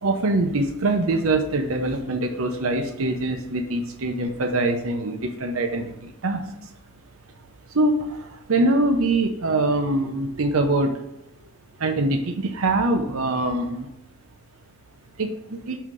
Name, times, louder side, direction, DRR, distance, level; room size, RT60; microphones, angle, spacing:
voice 1, 0.0-6.4 7.7-11.0 11.8-13.9 15.2-15.8, right 2 dB, 80° right, 5 dB, 0.8 m, -23 dB
5.7 x 4.0 x 4.8 m, 0.85 s
head